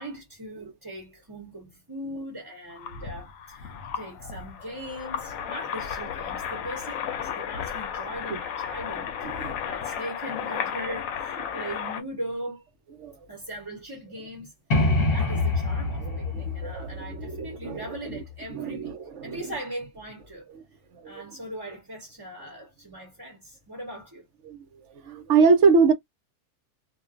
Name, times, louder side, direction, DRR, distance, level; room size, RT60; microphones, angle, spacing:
voice 1, 0.0-12.7 13.3-18.9 19.2-20.5 21.0-24.3, right 1 dB, 20° right, 0.8 m, -39 dB
sound 1, 2.7-12.0, left 8 dB, 85° left, 1.0 m, -34 dB
voice 2, 9.2-9.5 13.0-13.2 16.1-17.8 18.5-18.9 19.2-19.4 20.9-21.1 24.5-24.6 25.0-25.9, right 5 dB, 70° right, 1.0 m, -23 dB
sound 2, 14.7-18.4, left 2 dB, 50° left, 1.0 m, -26 dB
2.4 x 2.3 x 2.4 m
omnidirectional pair, 1.4 m